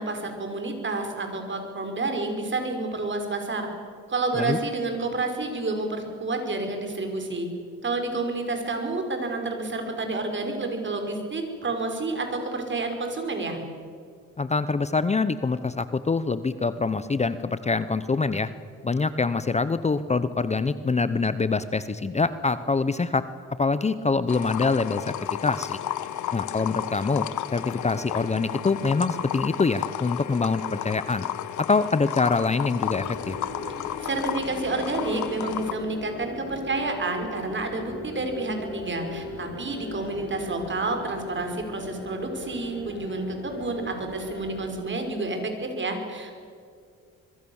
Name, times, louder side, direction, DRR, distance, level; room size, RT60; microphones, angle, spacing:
voice 1, 0.0-3.7 4.1-7.5 7.8-13.6 33.8-46.4, right 3 dB, 40° right, 4 dB, 5.5 m, -29 dB
voice 2, 14.4-18.5 18.8-23.3 23.6-25.0 25.4-25.8 26.3-27.3 27.5-31.3 31.7-33.4, left 4 dB, 20° left, 13 dB, 0.8 m, -25 dB
sound 1, 24.3-35.7, left 11 dB, 75° left, 1.3 m, -33 dB
sound 2, 32.9-44.7, left 2 dB, 40° left, 6.2 m, -38 dB
25.5 x 22.5 x 7.3 m, 2.2 s
cardioid pair, 90°, 30 cm